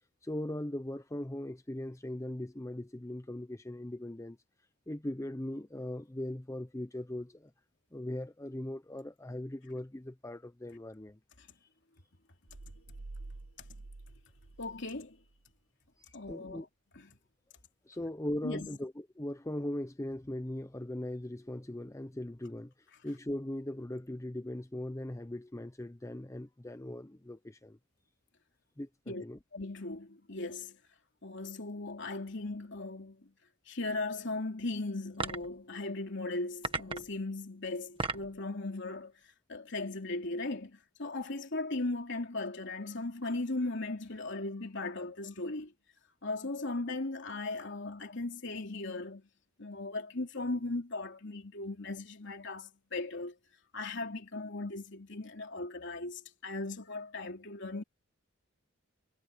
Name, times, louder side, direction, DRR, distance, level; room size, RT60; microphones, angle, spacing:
voice 1, 0.2-4.4 4.9-7.5 7.9-11.2 11.6-11.7 16.0-16.7 17.9-22.7 23.0-27.8 28.8-29.4, left 1 dB, 15° left, 0.7 m, -39 dB
sound 1, 12.5-15.5, right 2 dB, 85° right, 0.9 m, -48 dB
voice 2, 14.6-15.2 16.1-16.6 17.0-17.1 18.4-18.7 29.1-29.2 29.5-30.8 31.2-33.3 33.7-39.1 39.5-45.7 46.2-49.3 49.6-53.4 53.7-57.8, left 2 dB, 65° left, 3.1 m, -38 dB
sound 2, 35.1-35.6 36.6-37.2 37.7-38.4, right 3 dB, 25° right, 1.7 m, -35 dB
head